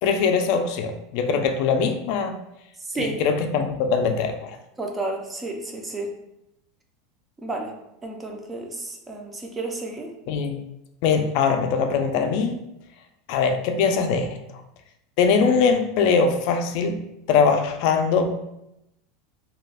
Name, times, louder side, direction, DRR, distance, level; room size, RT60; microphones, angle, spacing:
voice 1, 0.0-2.4 3.0-4.5 10.3-10.6 11.0-12.6 13.3-14.4 15.2-17.0 17.3-18.4, left 5 dB, 55° left, 6 dB, 0.4 m, -22 dB
voice 2, 2.9-3.2 4.8-6.1 7.4-7.7 8.0-10.1, right 2 dB, 15° right, 2 dB, 0.4 m, -31 dB
2.3 x 2.1 x 3.4 m, 0.85 s
supercardioid pair, 150°, 0 cm